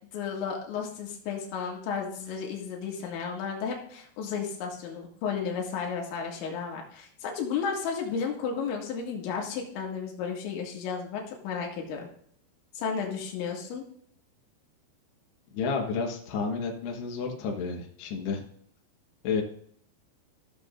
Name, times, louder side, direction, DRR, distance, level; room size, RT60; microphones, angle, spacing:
voice 1, 0.1-12.1 12.8-13.8, left 6 dB, 90° left, 0 dB, 4.1 m, -33 dB
voice 2, 15.5-18.4 19.2-19.4, left 5 dB, 70° left, 0 dB, 3.3 m, -31 dB
15.5 x 7.0 x 2.6 m, 0.64 s
omnidirectional pair, 5.2 m